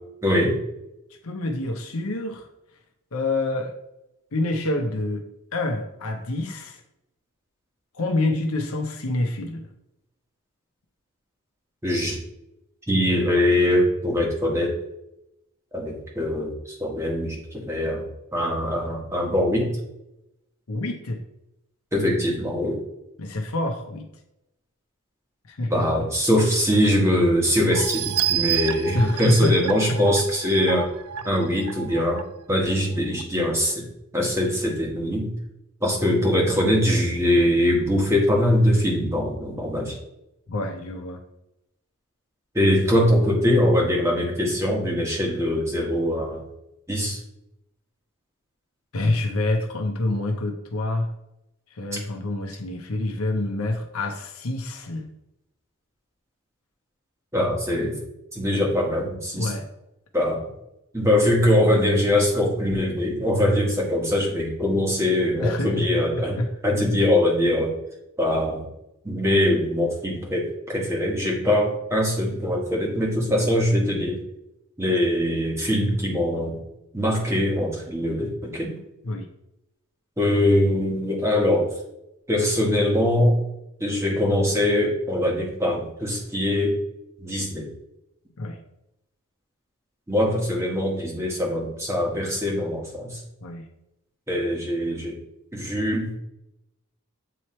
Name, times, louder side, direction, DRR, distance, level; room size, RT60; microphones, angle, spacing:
voice 1, 0.2-0.6 11.8-12.2 12.9-14.7 15.7-19.7 21.9-22.8 25.7-30.9 31.2-32.2 32.5-33.9 34.1-35.3 35.8-40.0 42.5-46.4 46.9-47.2 57.3-58.0 58.3-59.5 60.1-60.4 60.9-67.7 68.2-68.6 69.0-74.2 74.8-76.6 76.9-78.8 80.2-81.7 82.3-83.4 83.8-86.8 87.2-87.7 90.1-93.2 94.3-95.2 95.5-96.1, left 1 dB, 10° right, -2 dB, 1.2 m, -22 dB
voice 2, 1.2-2.5 3.1-3.8 4.3-5.2 5.5-6.8 7.9-9.7 20.7-21.2 23.2-24.1 25.5-25.9 28.9-30.0 40.5-41.2 48.9-51.1 51.7-55.1 59.3-59.7 65.4-66.5 71.5-71.6 79.0-79.3 88.4-88.6 93.4-93.7, left 2 dB, 75° left, 3 dB, 0.7 m, -27 dB
sound 1, 27.7-32.2 32.7-32.8 33.2-33.3, right 10 dB, 80° right, 0.4 m, -29 dB
7.8 x 3.1 x 4.3 m, 0.88 s
head